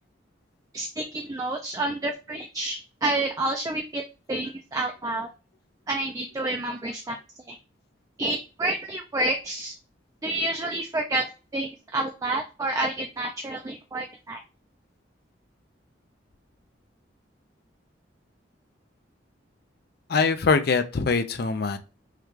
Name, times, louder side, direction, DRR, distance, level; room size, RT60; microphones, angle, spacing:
voice 1, 0.7-4.0 4.3-5.3 5.9-7.2 7.5-7.6 8.2-9.7 10.2-11.3 11.5-14.4, right 2 dB, 20° right, 3 dB, 0.4 m, -29 dB
voice 2, 20.1-21.8, left 4 dB, 55° left, 10 dB, 0.5 m, -23 dB
5.6 x 2.3 x 3.1 m, 0.32 s
head